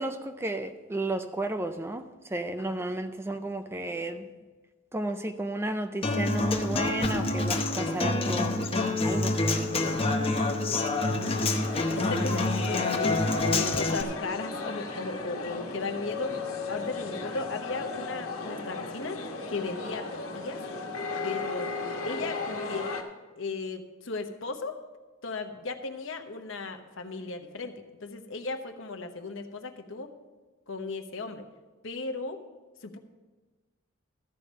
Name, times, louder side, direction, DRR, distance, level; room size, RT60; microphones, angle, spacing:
voice 1, 0.0-4.3 4.9-8.5 9.0-9.7 12.1-12.5, right 1 dB, 10° right, 8 dB, 0.4 m, -33 dB
Human voice / Acoustic guitar, 6.0-14.0, left 2 dB, 25° left, 0.8 m, -27 dB
voice 2, 10.2-13.2 13.5-16.3 16.7-19.2 19.5-20.6 21.2-22.9 23.4-24.8 25.2-30.1 30.7-31.4 31.8-32.4 32.8-33.0, left 3 dB, 65° left, 6 dB, 1.0 m, -36 dB
sound 1, 11.2-23.0, left 4 dB, 80° left, 1.4 m, -36 dB
13.5 x 5.2 x 7.5 m, 1.3 s
head